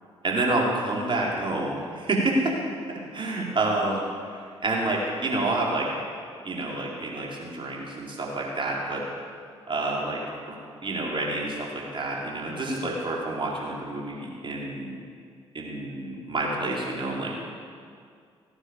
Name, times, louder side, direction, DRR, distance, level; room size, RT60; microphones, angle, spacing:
voice 1, 0.2-2.6 2.9-5.9 6.4-9.0 9.7-10.2 10.5-10.6 10.8-14.9 15.5-17.4, right 2 dB, 35° right, -3 dB, 4.6 m, -28 dB
17.5 x 9.7 x 7.3 m, 2.2 s
hypercardioid pair, 45°, 14 cm